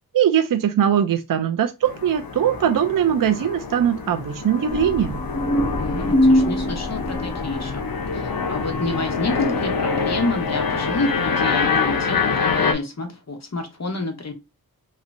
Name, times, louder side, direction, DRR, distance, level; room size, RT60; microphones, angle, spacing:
voice 1, 0.1-5.2, right 9 dB, 60° right, 0.5 m, -21 dB
sound 1, 1.8-12.7, left 5 dB, 70° left, 0.7 m, -26 dB
sound 2, 4.7-10.4, equal, 15° left, 1.4 m, -25 dB
voice 2, 5.8-7.8 8.1-14.3, left 2 dB, 45° left, 1.1 m, -28 dB
3.1 x 3.0 x 2.5 m
wide cardioid pair, 55°, 37 cm